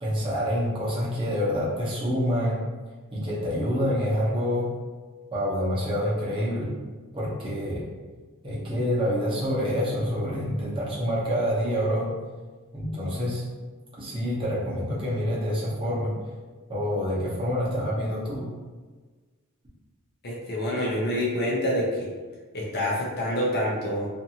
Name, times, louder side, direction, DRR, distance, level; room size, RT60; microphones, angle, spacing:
voice 1, 0.0-2.6 3.1-4.7 5.3-6.7 7.1-7.8 8.4-12.1 12.7-13.4 14.0-16.1 16.7-18.5, equal, 25° right, -7 dB, 0.8 m, -27 dB
voice 2, 20.2-22.1 22.5-24.1, equal, 45° left, -4 dB, 0.6 m, -27 dB
2.6 x 2.5 x 2.8 m, 1.4 s
head